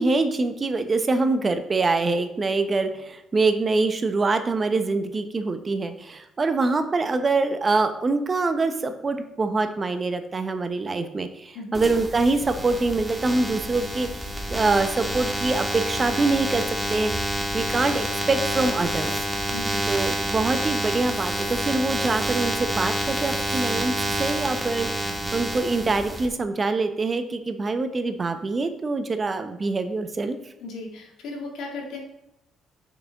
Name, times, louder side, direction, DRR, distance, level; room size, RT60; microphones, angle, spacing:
voice 1, 0.0-19.2 19.9-23.9 24.2-30.4, right 3 dB, 35° right, 8 dB, 0.9 m, -25 dB
voice 2, 11.5-11.9 19.5-19.9 30.6-32.0, left 3 dB, 75° left, 0 dB, 2.0 m, -36 dB
sound 1, 11.7-26.3, right 1 dB, 10° right, 1.6 m, -28 dB
6.6 x 6.0 x 3.6 m, 0.89 s
supercardioid pair, 55°, 0 cm